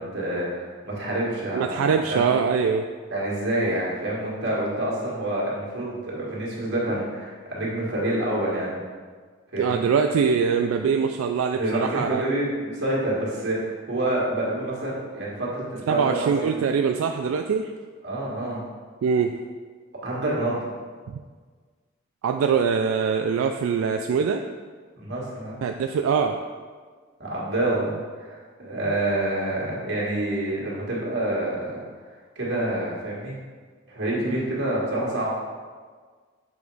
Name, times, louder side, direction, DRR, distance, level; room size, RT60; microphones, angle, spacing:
voice 1, 0.0-2.2 3.1-8.8 9.5-9.8 11.5-16.6 18.0-18.6 20.0-20.6 24.9-25.6 27.2-27.9 28.2-31.8 32.3-33.3 33.9-35.3, right 1 dB, 55° right, -5 dB, 1.7 m, -27 dB
voice 2, 1.5-2.9 9.6-12.2 15.9-17.7 19.0-19.4 21.1-21.2 22.2-24.5 25.6-26.4, right 6 dB, 85° right, 5 dB, 0.3 m, -23 dB
7.0 x 3.0 x 4.7 m, 1.6 s
head